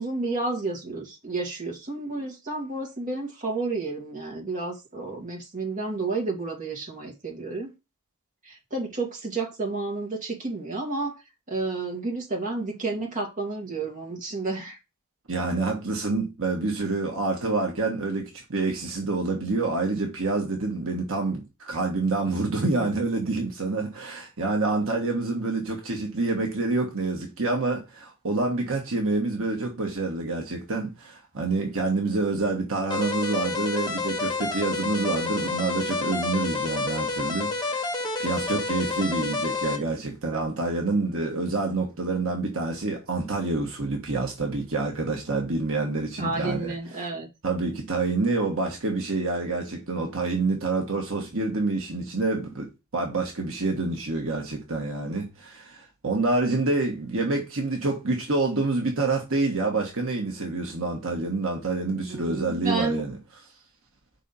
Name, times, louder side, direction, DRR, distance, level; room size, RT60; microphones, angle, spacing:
voice 1, 0.0-7.7 8.4-11.2 11.5-14.8 40.3-40.5 46.2-47.3 62.0-63.0, right 3 dB, 35° right, 2.1 m, -31 dB
voice 2, 15.3-37.9 38.2-46.7 47.4-63.1, right 3 dB, 65° right, 1.5 m, -27 dB
sound 1, 32.9-39.8, left 3 dB, 20° left, 1.2 m, -29 dB
5.4 x 4.2 x 5.5 m
head